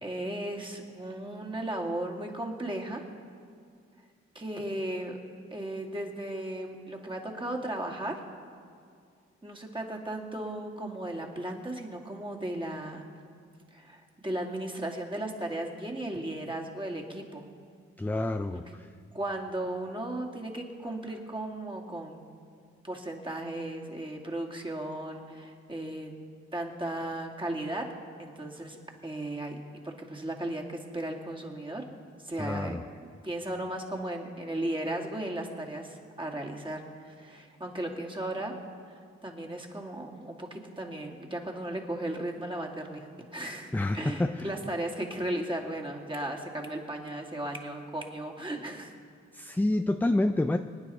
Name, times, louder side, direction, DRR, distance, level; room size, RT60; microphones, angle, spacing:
voice 1, 0.0-3.1 4.3-5.2 5.5-8.2 9.4-13.0 13.7-17.4 18.7-18.8 19.1-22.3 22.8-26.1 26.5-27.9 28.2-29.6 29.8-32.0 32.2-32.8 33.2-38.5 39.2-48.9, right 1 dB, 15° right, 0 dB, 2.4 m, -36 dB
voice 2, 18.0-18.9 32.4-32.9 43.7-44.5 49.3-50.6, left 2 dB, 5° left, 9 dB, 0.4 m, -28 dB
24.5 x 9.6 x 4.3 m, 2.2 s
supercardioid pair, 55°, 29 cm